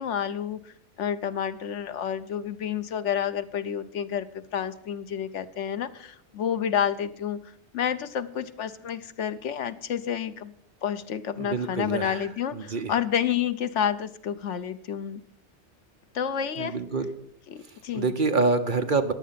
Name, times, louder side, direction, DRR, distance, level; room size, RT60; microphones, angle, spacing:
voice 1, 0.0-7.4 7.7-10.5 10.8-15.2 16.1-16.8 17.5-18.1, left 9 dB, 80° left, 12 dB, 1.1 m, -29 dB
voice 2, 11.4-12.3 12.5-12.9 16.6-17.1 17.9-19.1, right 3 dB, 45° right, 7 dB, 1.2 m, -26 dB
15.0 x 10.5 x 5.8 m, 0.68 s
omnidirectional pair, 1.2 m